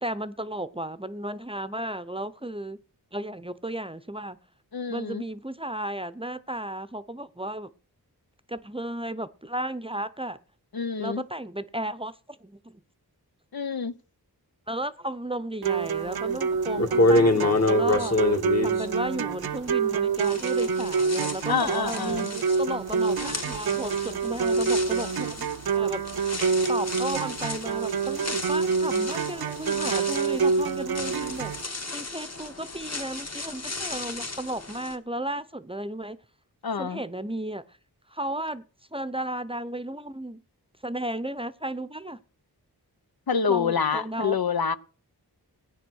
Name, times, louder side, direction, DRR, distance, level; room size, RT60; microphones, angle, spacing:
voice 1, 0.0-2.8 3.1-4.4 4.9-7.7 8.5-10.4 11.0-12.8 14.7-18.2 18.6-36.2 36.8-37.6 38.1-38.6 38.9-40.4 40.8-42.2 43.5-44.4, right 1 dB, 15° right, 0.7 m, -34 dB
voice 2, 4.7-5.2 10.7-11.2 13.5-13.9 21.5-22.3 36.6-37.0 43.3-44.8, left 6 dB, 65° left, 0.9 m, -27 dB
sound 1, 15.6-31.6, right 5 dB, 70° right, 0.7 m, -27 dB
sound 2, 16.2-16.3 16.7-19.9 20.2-34.9, left 2 dB, 40° left, 1.8 m, -29 dB
17.0 x 9.2 x 6.3 m
wide cardioid pair, 65°, 39 cm